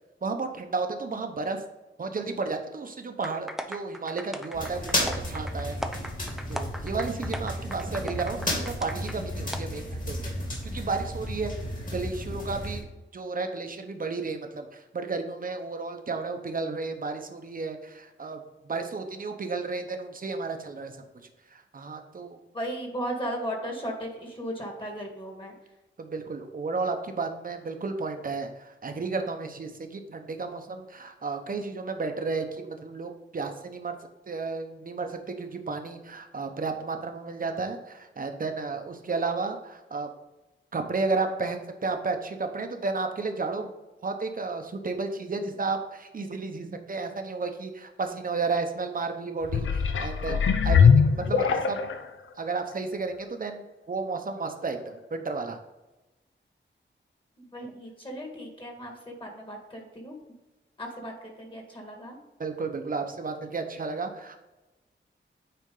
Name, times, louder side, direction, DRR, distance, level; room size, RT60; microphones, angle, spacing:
voice 1, 0.2-1.6 2.0-5.8 6.5-10.3 10.6-11.5 11.9-12.9 13.1-21.0 21.5-22.4 26.0-34.0 34.3-40.1 40.7-43.7 44.0-51.8 52.4-55.6 62.4-64.4, right 4 dB, 45° right, 5 dB, 0.9 m, -32 dB
sound 1, 3.2-9.2 9.5-9.6, equal, ahead, 0.5 m, -38 dB
sound 2, 4.5-12.8, left 1 dB, 40° left, 2.6 m, -33 dB
voice 2, 22.5-25.5 57.4-60.2 60.8-62.2, equal, 25° left, 1 dB, 1.8 m, -36 dB
sound 3, 49.4-52.1 52.7-52.8, left 6 dB, 85° left, 0.6 m, -21 dB
9.3 x 4.5 x 3.8 m, 1.1 s
wide cardioid pair, 135°, 20 cm